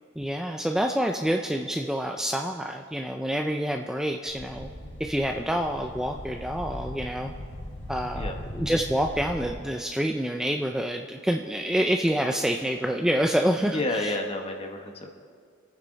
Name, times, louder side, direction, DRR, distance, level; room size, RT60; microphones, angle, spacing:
voice 1, 0.2-4.7 5.0-7.3 7.9-14.1, equal, 5° right, 3 dB, 0.4 m, -27 dB
sound 1, 4.3-9.5, equal, 90° left, 4.6 m, -39 dB
voice 2, 13.7-15.1, left 2 dB, 30° left, 3 dB, 1.4 m, -30 dB
26.0 x 9.2 x 4.0 m, 2.2 s
head